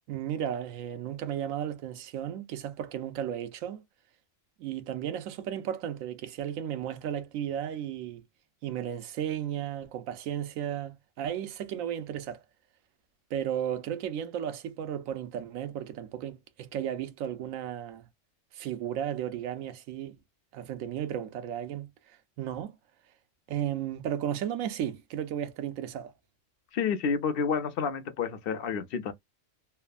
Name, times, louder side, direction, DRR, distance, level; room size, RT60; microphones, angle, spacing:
voice 1, 0.1-3.8 4.6-8.2 8.6-12.4 13.3-18.1 18.5-20.2 20.5-21.9 22.4-22.8 23.5-26.1, right 10 dB, 85° right, 1.0 m, -34 dB
voice 2, 26.7-29.1, left 6 dB, 60° left, 0.6 m, -29 dB
3.1 x 2.0 x 2.4 m
omnidirectional pair, 1.3 m